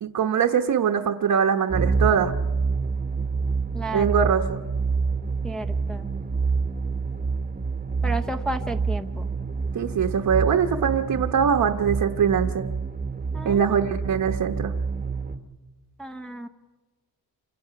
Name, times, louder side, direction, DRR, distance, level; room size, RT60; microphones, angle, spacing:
voice 1, 0.0-2.3 3.9-4.6 9.7-12.7 13.4-14.7, right 7 dB, 55° right, 3 dB, 1.1 m, -22 dB
sound 1, 1.7-15.4, right 4 dB, 25° right, 1.1 m, -27 dB
voice 2, 3.7-4.3 5.4-6.1 8.0-9.3 13.3-13.8 16.0-16.5, right 2 dB, ahead, 5 dB, 0.7 m, -32 dB
28.5 x 26.0 x 5.9 m, 1.3 s
wide cardioid pair, 175°, 38 cm